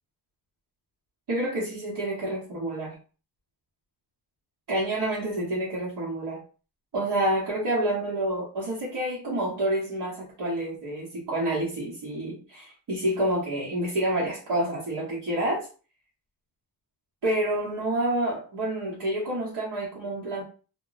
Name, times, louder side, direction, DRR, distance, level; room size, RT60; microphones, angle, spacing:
voice 1, 1.3-3.0 4.7-6.4 6.9-15.7 17.2-20.4, right 1 dB, 65° right, -5 dB, 1.1 m, -28 dB
2.3 x 2.1 x 3.8 m, 0.37 s
wide cardioid pair, 145°, 44 cm